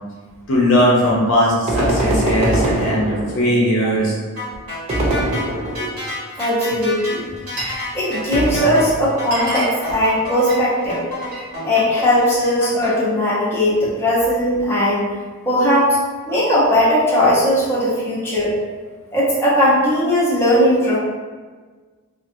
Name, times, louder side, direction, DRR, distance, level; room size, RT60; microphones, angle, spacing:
voice 1, 0.5-4.2 5.8-5.9, equal, 65° left, -4 dB, 0.6 m, -18 dB
sound 1, 1.7-3.6 4.9-6.1 8.3-9.3, right 1 dB, 30° right, 0.4 m, -22 dB
sound 2, 4.4-12.9, left 2 dB, 75° right, 1.3 m, -30 dB
voice 2, 6.4-7.3 7.9-11.0 11.6-15.1 15.5-16.0 16.3-18.5 19.1-21.0, equal, 10° left, -10 dB, 0.8 m, -18 dB
Glass, 6.9-7.9 8.1-8.5 8.9-9.0 9.2-11.5 11.8-12.6, right 1 dB, 45° right, 1.0 m, -31 dB
2.5 x 2.4 x 2.7 m, 1.4 s
head